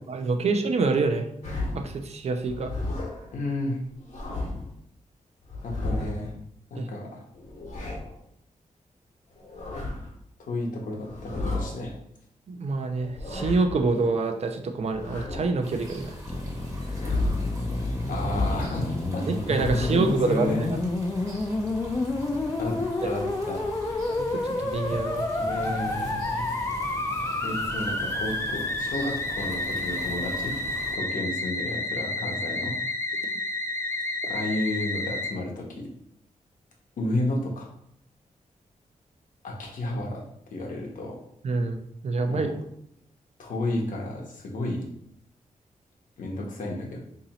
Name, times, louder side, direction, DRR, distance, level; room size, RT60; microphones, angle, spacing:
voice 1, 0.1-1.3 1.7-2.7 6.8-6.9 12.5-16.1 19.3-20.5 23.0-23.1 24.2-25.3 41.4-42.5, right 3 dB, 55° right, 6 dB, 0.5 m, -26 dB
sound 1, 1.4-2.0 2.4-3.3 3.9-4.7 5.4-6.3 7.3-8.2 9.3-10.1 11.0-11.8 12.9-13.8 14.9-15.7 16.7-17.6 18.2-18.8 19.3-20.1, left 2 dB, 60° left, 1.0 m, -32 dB
voice 2, 3.3-3.8 5.6-6.3 6.7-7.2 10.4-12.0 18.1-19.2 19.9-20.6 22.6-23.6 25.4-26.6 27.4-30.6 30.9-32.7 34.3-35.9 37.0-37.7 39.4-40.2 40.5-41.2 42.3-42.5 43.4-44.9 46.2-47.0, left 1 dB, 85° left, -1 dB, 0.8 m, -32 dB
sound 2, 15.6-30.9, equal, 25° right, 0.9 m, -41 dB
Musical instrument, 16.3-35.3, left 2 dB, 20° left, 0.4 m, -30 dB
2.9 x 2.7 x 4.1 m, 0.72 s
wide cardioid pair, 140°, 13 cm